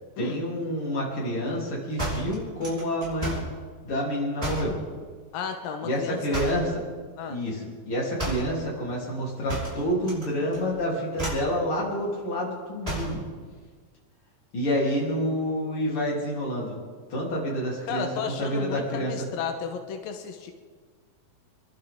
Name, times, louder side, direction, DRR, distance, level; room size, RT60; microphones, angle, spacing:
voice 1, 0.2-3.5 3.8-4.8 5.8-6.7 7.3-13.2 14.5-16.8 17.1-18.1 18.4-19.1, equal, 40° left, -4 dB, 4.2 m, -28 dB
sound 1, 2.0-3.6 4.4-4.8 6.3-6.7 8.2-8.6 9.5-10.3 10.5-10.8 11.1-11.5 12.8-13.2, right 1 dB, 10° right, 5.5 m, -32 dB
voice 2, 5.3-6.4 7.2-7.4 17.9-20.5, left 6 dB, 90° left, 5 dB, 2.8 m, -33 dB
27.5 x 12.0 x 3.8 m, 1.6 s
omnidirectional pair, 3.9 m